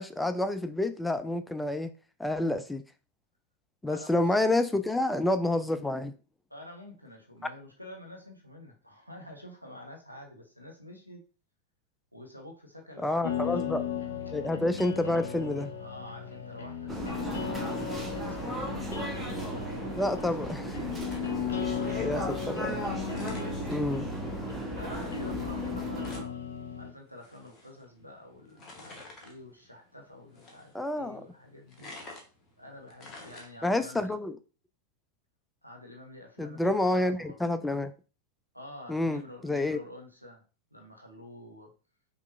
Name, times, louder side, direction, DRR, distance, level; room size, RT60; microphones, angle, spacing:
voice 1, 0.0-1.9 2.2-2.8 3.8-6.1 13.0-13.8 14.3-15.7 20.0-20.6 22.0-22.7 23.7-24.1 30.7-31.2 33.6-34.4 36.4-37.9 38.9-39.8, left 1 dB, 5° left, 0.3 m, -28 dB
voice 2, 3.8-4.4 6.5-11.2 12.1-13.8 15.8-21.6 22.6-23.7 24.8-26.4 26.7-31.9 32.6-34.2 35.6-37.4 38.5-40.4 40.7-41.7, left 1 dB, 90° right, 0.9 m, -49 dB
sound 1, 13.2-26.9, left 8 dB, 65° left, 0.7 m, -36 dB
sound 2, 16.9-26.2, right 2 dB, 10° right, 0.8 m, -36 dB
sound 3, 19.9-34.0, left 2 dB, 25° left, 1.1 m, -52 dB
5.2 x 2.5 x 2.5 m
figure-of-eight pair, 90°, 0 cm